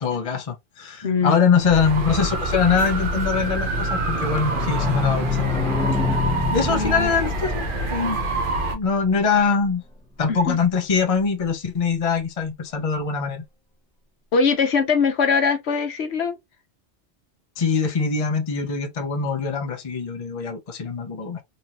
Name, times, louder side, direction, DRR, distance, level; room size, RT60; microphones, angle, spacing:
voice 1, 0.0-5.5 5.9-6.1 6.5-8.2 8.7-9.8 10.2-13.4 17.6-21.4, left 5 dB, 35° left, 0.8 m, -23 dB
voice 2, 1.0-1.3 6.7-7.1 10.3-10.6 14.3-16.4, left 5 dB, 70° left, 1.1 m, -21 dB
sound 1, 1.6-8.8, right 2 dB, 50° right, 0.9 m, -26 dB
sound 2, 4.1-9.7 10.0-10.1 10.2-10.3 10.6-10.7, left 5 dB, 10° left, 0.3 m, -28 dB
4.0 x 2.7 x 2.9 m
omnidirectional pair, 1.2 m